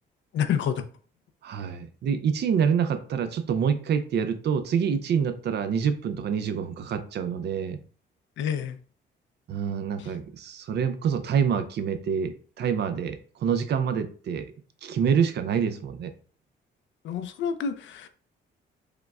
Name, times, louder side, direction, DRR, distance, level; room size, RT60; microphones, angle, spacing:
voice 1, 0.3-0.8 8.4-8.8 10.0-10.1 17.0-18.1, left 8 dB, 70° left, 0.5 m, -28 dB
voice 2, 1.4-7.8 9.5-14.5 14.8-16.1, right 7 dB, 60° right, 0.5 m, -26 dB
4.9 x 2.1 x 2.3 m
cardioid pair, 90°, 20 cm